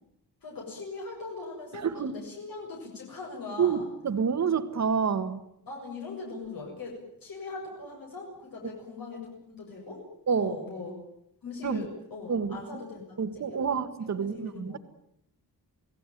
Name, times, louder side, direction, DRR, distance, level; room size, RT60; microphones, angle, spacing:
voice 1, 0.4-3.9 5.7-10.0 10.4-10.9 11.4-13.0 13.3-14.8, left 3 dB, 60° left, -1 dB, 7.7 m, -40 dB
voice 2, 1.8-2.1 3.6-5.4 10.3-10.6 11.6-11.9 12.3-12.6 13.2-14.8, right 6 dB, 45° right, 9 dB, 1.7 m, -28 dB
29.0 x 18.5 x 9.2 m, 0.76 s
wide cardioid pair, 180°, 38 cm